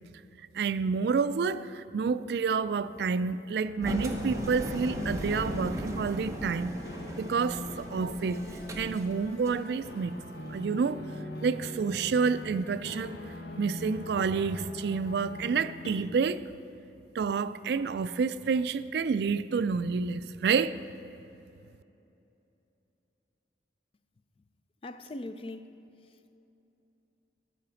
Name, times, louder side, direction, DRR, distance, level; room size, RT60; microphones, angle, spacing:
voice 1, 0.5-6.7 7.2-8.4 8.8-10.2 10.5-11.0 11.4-16.5 17.1-20.8, right 5 dB, 60° right, 0.3 m, -29 dB
sound 1, 3.5-15.9, left 1 dB, 65° left, 1.0 m, -42 dB
Engine, 3.8-9.6, equal, 15° right, 0.8 m, -37 dB
voice 2, 24.8-26.4, left 2 dB, 30° left, 0.4 m, -42 dB
13.0 x 4.9 x 6.9 m
head